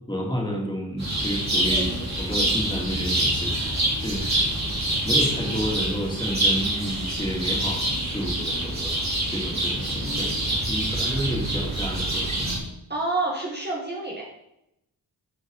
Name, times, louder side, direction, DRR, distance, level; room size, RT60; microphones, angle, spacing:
voice 1, 0.0-1.9 2.2-4.2 5.0-9.0 9.3-12.6, equal, 10° left, -2 dB, 2.8 m, -30 dB
sound 1, 1.0-12.6, right 1 dB, 40° right, 3.9 m, -26 dB
voice 2, 12.9-14.2, right 2 dB, 25° right, -3 dB, 1.6 m, -28 dB
13.0 x 5.3 x 4.0 m, 0.85 s
wide cardioid pair, 80°, 41 cm